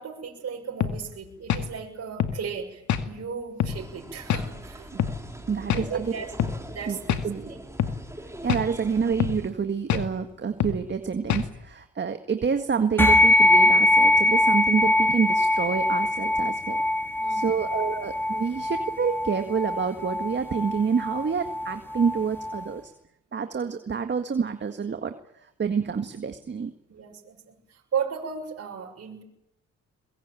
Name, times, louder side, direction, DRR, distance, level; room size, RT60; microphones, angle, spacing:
voice 1, 0.0-4.9 5.3-6.3 6.7-7.6 17.2-17.7 26.9-29.2, right 6 dB, 55° right, 1 dB, 6.6 m, -35 dB
sound 1, 0.8-1.0 1.5-1.7 2.2-2.4 2.9-3.1 3.6-3.8 4.3-4.5 5.0-5.2 5.7-5.9 6.4-6.6 7.1-7.3 7.8-8.0 8.5-8.7 9.2-9.4 9.9-10.1 10.6-10.8 11.3-11.5, left 9 dB, 70° left, 2.3 m, -25 dB
sound 2, 3.7-9.5, right 1 dB, 10° right, 4.0 m, -42 dB
voice 2, 5.5-6.1 6.9-7.0 7.2-7.5 8.4-16.8 17.3-22.9 23.3-25.1 25.6-26.7, right 6 dB, 35° right, 7 dB, 1.8 m, -27 dB
sound 3, 13.0-22.7, left 1 dB, 5° left, 4.0 m, -22 dB
22.5 x 22.5 x 9.2 m, 0.81 s
cardioid pair, 90°, 30 cm